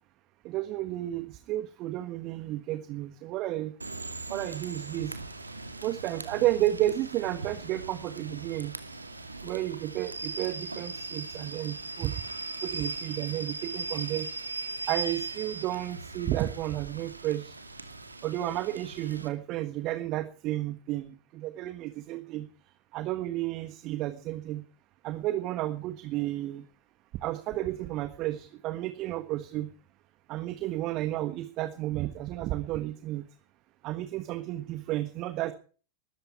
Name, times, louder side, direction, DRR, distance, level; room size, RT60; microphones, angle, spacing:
voice 1, 0.4-3.7 4.3-5.1 5.8-8.7 9.4-12.1 12.6-14.3 14.9-17.5 18.2-22.5 22.9-24.6 25.0-26.6 27.2-29.7 30.3-33.2 33.8-35.5, right 15 dB, 40° right, 12 dB, 1.4 m, -32 dB
Rain / Train, 3.8-19.3, right 3 dB, 80° right, 2.3 m, -39 dB
20.0 x 14.5 x 4.7 m, 0.41 s
figure-of-eight pair, 90°, 0 cm